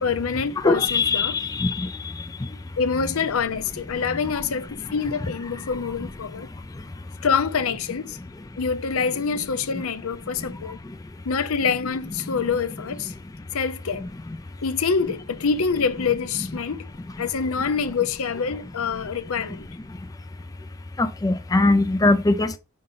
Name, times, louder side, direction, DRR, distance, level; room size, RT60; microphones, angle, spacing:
voice 1, 0.0-1.4 2.8-6.5 7.2-8.2 8.6-10.8 11.2-13.1 13.5-14.1 14.6-16.9 17.2-19.7, left 5 dB, 70° left, 0.6 m, -26 dB
voice 2, 0.6-1.9 21.0-22.6, left 2 dB, 15° left, 0.4 m, -21 dB
5.3 x 3.8 x 5.4 m
head